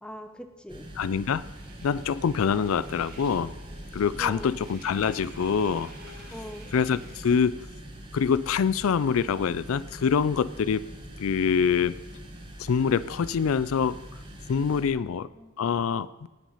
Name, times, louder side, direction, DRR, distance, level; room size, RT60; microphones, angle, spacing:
voice 1, 0.0-0.8 4.2-4.6 6.3-6.7 15.0-15.5, equal, 5° left, 7 dB, 0.8 m, -42 dB
sound 1, 0.7-14.8, equal, 20° right, 1.7 m, -44 dB
voice 2, 1.0-1.4 1.8-3.5 3.9-5.9 6.7-7.6 8.1-10.8 11.2-12.0 12.6-14.0 14.5-15.3 15.6-16.3, left 6 dB, 75° left, 18 dB, 0.4 m, -25 dB
sound 2, 1.4-7.4, right 1 dB, 40° right, 3.4 m, -48 dB
18.0 x 6.1 x 5.6 m, 1.2 s
head